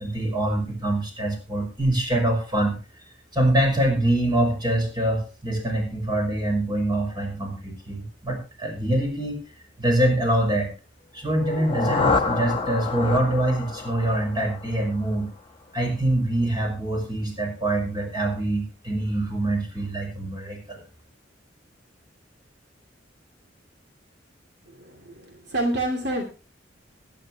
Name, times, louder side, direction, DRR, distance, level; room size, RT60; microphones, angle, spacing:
voice 1, 0.0-2.8 3.3-9.4 9.8-10.7 11.1-15.3 15.7-20.8, right 1 dB, 25° right, 2 dB, 5.6 m, -24 dB
sound 1, 11.3-15.3, left 4 dB, 30° left, 1.1 m, -28 dB
voice 2, 24.8-26.2, right 1 dB, 60° right, 2 dB, 2.5 m, -28 dB
21.5 x 10.0 x 2.9 m, 0.32 s
head